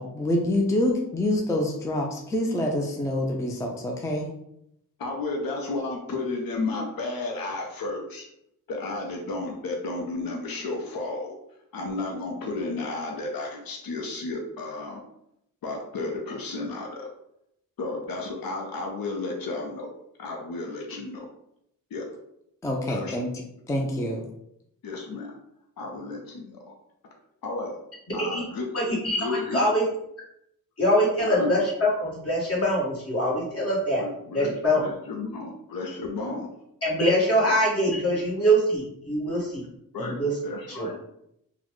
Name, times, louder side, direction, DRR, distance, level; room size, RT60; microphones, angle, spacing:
voice 1, 0.0-4.3 22.6-23.3 23.7-24.3, left 1 dB, 10° left, 0 dB, 0.4 m, -26 dB
voice 2, 5.0-8.3 8.7-11.3 11.7-15.0 15.6-17.1 17.8-19.9 20.2-21.3 21.9-22.0 22.9-23.2 24.8-25.3 25.8-26.7 27.4-27.8 28.1-28.7 29.1-29.6 31.2-31.5 34.0-34.5 34.8-36.5 37.4-37.5 39.9-41.0, left 3 dB, 80° left, 1 dB, 0.6 m, -32 dB
voice 3, 28.7-29.8 30.8-34.0 34.3-34.8 36.8-39.6 40.0-40.3 40.7-40.9, equal, 40° left, -5 dB, 1.4 m, -23 dB
3.9 x 2.1 x 3.0 m, 0.77 s
wide cardioid pair, 110°, 34 cm